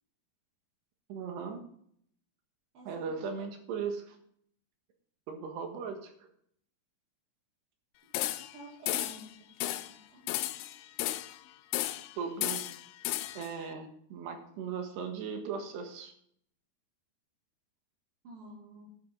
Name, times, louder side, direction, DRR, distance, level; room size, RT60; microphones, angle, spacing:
voice 1, 1.1-1.6 2.9-4.2 5.3-6.3 12.2-12.6 13.4-16.1, right 6 dB, 90° right, 4 dB, 3.8 m, -38 dB
voice 2, 2.7-3.5 8.5-10.3 18.2-18.9, right 1 dB, 60° right, -7 dB, 4.6 m, -51 dB
sound 1, 8.1-8.6 8.9-9.3 9.6-9.9 10.3-11.4 11.7-12.1 12.4-13.5, left 15 dB, 80° left, 2.6 m, -33 dB
10.5 x 10.5 x 4.0 m, 0.65 s
omnidirectional pair, 4.7 m